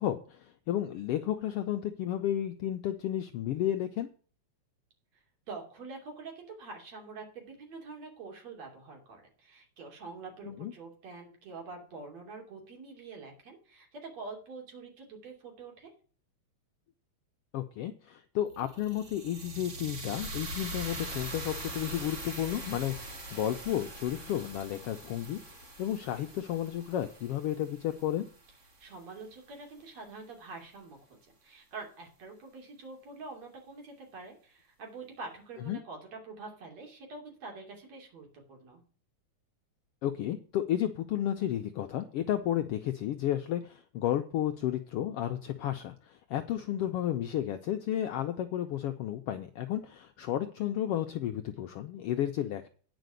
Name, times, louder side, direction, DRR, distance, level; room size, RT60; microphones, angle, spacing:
voice 1, 0.0-4.1 10.5-10.7 17.5-25.4 25.8-28.2 35.7-35.8 40.0-52.7, left 11 dB, 85° left, 7 dB, 1.3 m, -32 dB
voice 2, 5.1-15.9 28.8-31.0 31.3-38.8, right 3 dB, 60° right, 1 dB, 4.0 m, -46 dB
sound 1, 18.5-28.7, right 1 dB, 35° right, 1.2 m, -42 dB
9.9 x 5.2 x 7.8 m, 0.42 s
omnidirectional pair, 3.4 m